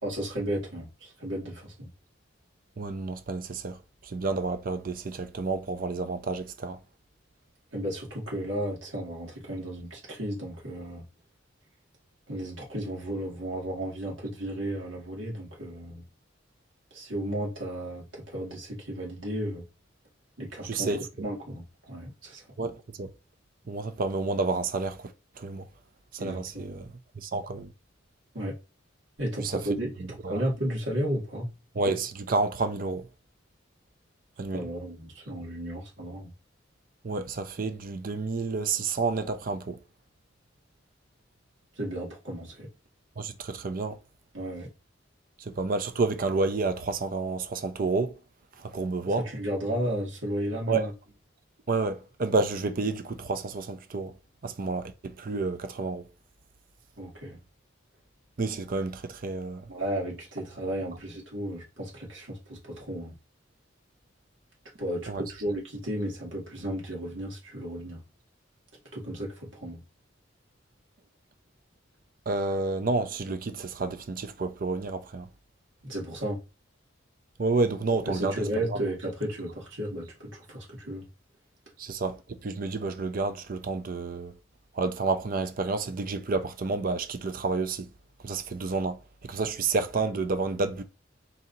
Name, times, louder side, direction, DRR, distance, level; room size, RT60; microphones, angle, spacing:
voice 1, 0.0-1.9 7.7-11.0 12.3-16.0 16.9-19.6 20.4-20.9 21.2-22.4 26.2-26.8 28.3-28.6 29.2-31.5 34.5-36.3 41.8-42.7 44.3-44.7 49.2-50.9 57.0-57.4 59.7-63.1 64.8-68.0 68.9-69.8 75.8-76.4 78.1-81.0, right 1 dB, 80° right, 2.2 m, -34 dB
voice 2, 2.8-3.8 4.0-6.8 20.6-21.0 22.6-23.1 23.7-25.1 25.4-25.7 26.1-26.9 27.2-27.7 29.4-29.6 30.2-30.4 31.8-33.1 34.4-34.7 37.0-39.8 43.2-44.0 45.4-48.2 48.6-49.2 50.7-50.9 51.7-54.1 54.4-56.0 58.4-59.7 65.1-65.2 72.3-75.3 77.4-78.8 81.8-84.3 84.7-87.9 88.2-90.8, right 3 dB, 45° right, 0.5 m, -30 dB
4.0 x 2.7 x 4.0 m
head